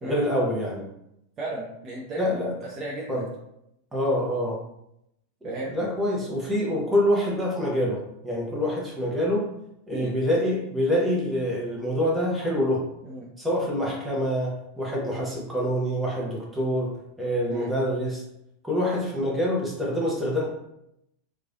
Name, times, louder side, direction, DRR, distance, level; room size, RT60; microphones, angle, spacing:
voice 1, 0.0-0.8 2.2-2.5 3.1-3.2 3.9-4.6 5.4-9.5 9.9-12.9 13.4-18.2 18.6-20.5, equal, 5° right, -4 dB, 0.9 m, -26 dB
voice 2, 1.4-2.2 2.6-3.3 5.4-5.7 9.9-10.1 13.0-13.3 17.5-17.7, right 2 dB, 30° right, -3 dB, 0.5 m, -35 dB
3.0 x 2.3 x 2.5 m, 0.81 s
figure-of-eight pair, 90°, 0 cm